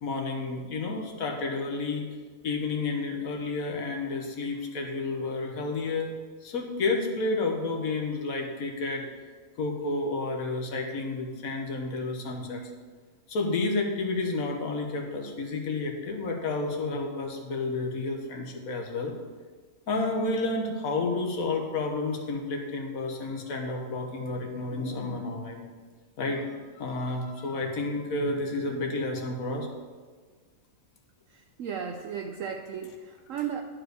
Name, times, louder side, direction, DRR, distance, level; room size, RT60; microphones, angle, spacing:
voice 1, 0.0-2.0 2.4-6.1 6.4-9.1 9.6-12.6 13.3-19.2 19.9-25.6 26.2-26.4 26.7-29.7, left 3 dB, 70° left, 2 dB, 1.6 m, -30 dB
voice 2, 31.3-33.6, right 7 dB, 65° right, 4 dB, 1.0 m, -35 dB
11.0 x 4.7 x 6.5 m, 1.5 s
omnidirectional pair, 1.5 m